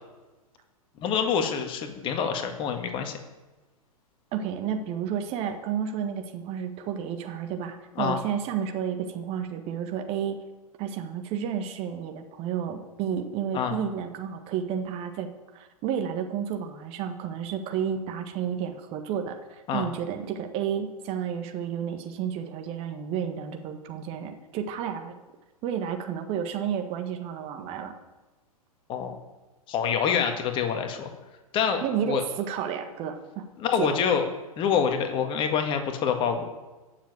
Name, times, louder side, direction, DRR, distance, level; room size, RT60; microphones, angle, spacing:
voice 1, 1.0-3.1 8.0-8.2 13.5-13.8 19.7-19.9 28.9-29.1 29.7-31.1 31.5-32.2 33.6-34.2 34.6-36.4, left 7 dB, 25° left, 5 dB, 1.8 m, -26 dB
voice 2, 4.3-10.4 10.8-15.3 15.5-25.1 25.6-27.9 31.8-33.5 33.8-34.0, right 8 dB, 30° right, 6 dB, 1.5 m, -31 dB
15.5 x 7.4 x 9.1 m, 1.2 s
figure-of-eight pair, 105°, 19 cm